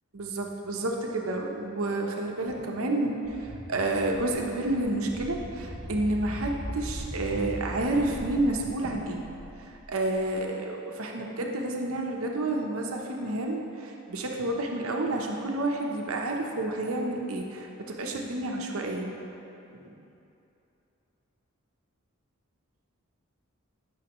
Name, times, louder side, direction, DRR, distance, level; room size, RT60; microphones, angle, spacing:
voice 1, 0.1-9.2 9.9-19.1 19.7-20.0, right 2 dB, 80° right, 1 dB, 0.9 m, -30 dB
sound 1, 3.2-10.3, equal, ahead, 0.9 m, -40 dB
12.0 x 5.6 x 3.1 m, 2.8 s
head